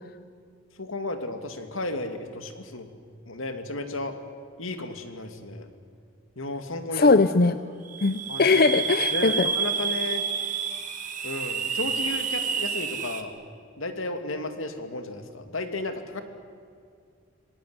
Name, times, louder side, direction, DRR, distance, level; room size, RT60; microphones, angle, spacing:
voice 1, 0.8-2.9 3.3-4.1 4.6-5.7 6.4-7.2 8.3-8.7 9.1-10.2 11.2-13.3 13.8-16.2, left 2 dB, 85° left, 7 dB, 2.4 m, -33 dB
voice 2, 7.0-7.6 8.0-9.5, left 3 dB, 45° left, 11 dB, 0.6 m, -20 dB
sound 1, 7.9-13.2, right 6 dB, 40° right, 1.7 m, -29 dB
27.5 x 19.0 x 9.6 m, 2.2 s
head